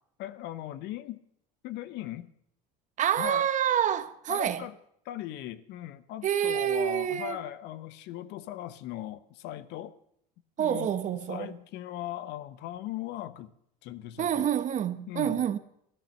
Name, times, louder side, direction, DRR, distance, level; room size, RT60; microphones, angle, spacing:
voice 1, 0.2-1.2 1.6-2.3 3.2-3.5 4.3-4.8 5.0-9.9 10.6-10.9 11.3-13.5 13.8-14.5 15.1-15.4, left 13 dB, 60° left, 1.0 m, -39 dB
voice 2, 3.0-4.6 6.2-7.4 10.6-11.5 14.2-15.6, right 10 dB, 40° right, 1.0 m, -27 dB
13.5 x 10.5 x 6.5 m
supercardioid pair, 100°, 20 cm